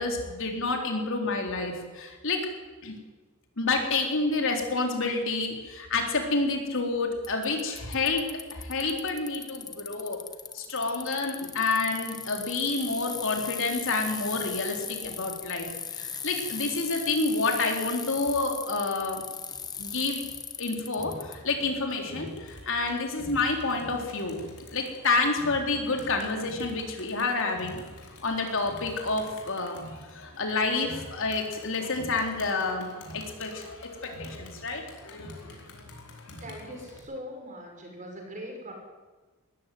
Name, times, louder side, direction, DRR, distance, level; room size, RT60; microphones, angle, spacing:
voice 1, 0.0-2.5 2.8-2.9 3.6-10.2 10.5-19.2 19.8-20.2 20.6-27.8 28.2-33.6 34.0-35.4, left 3 dB, 60° left, 3 dB, 3.9 m, -29 dB
Bicycle, 7.2-21.4, left 6 dB, 20° left, 1.1 m, -38 dB
Crowd, 21.0-37.0, left 1 dB, 90° left, 4.5 m, -46 dB
voice 2, 36.4-38.7, equal, 35° right, 1 dB, 5.9 m, -41 dB
20.5 x 14.0 x 9.4 m, 1.2 s
head